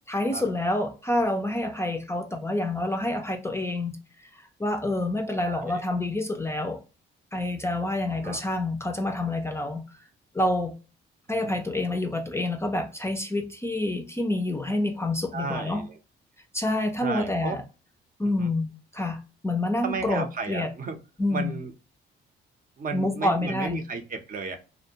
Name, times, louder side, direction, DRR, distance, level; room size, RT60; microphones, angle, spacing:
voice 1, 0.1-4.0 4.2-4.3 4.6-6.8 7.3-9.8 10.3-10.7 11.3-15.9 16.5-17.6 18.2-20.7 21.2-21.5 22.9-23.8, left 1 dB, 15° left, 0.4 m, -27 dB
voice 2, 5.4-5.9 8.1-8.4 11.4-11.6 15.3-16.0 17.0-17.6 18.2-18.5 19.8-21.0 21.3-21.7 22.8-24.6, right 4 dB, 45° right, 0.6 m, -34 dB
2.5 x 2.1 x 2.7 m
cardioid pair, 90°, 20 cm